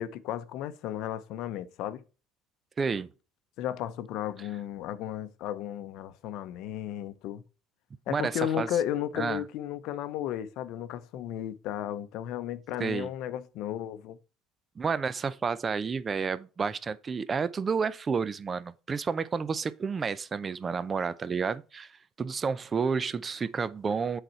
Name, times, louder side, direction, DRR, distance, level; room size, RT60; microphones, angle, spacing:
voice 1, 0.0-2.0 3.6-7.4 8.1-14.2, left 11 dB, 65° left, 0.7 m, -34 dB
voice 2, 2.8-3.1 8.1-8.7 9.2-9.4 12.8-13.1 14.8-24.2, right 5 dB, 25° right, 0.5 m, -30 dB
7.9 x 4.2 x 4.4 m
cardioid pair, 120°, 0 cm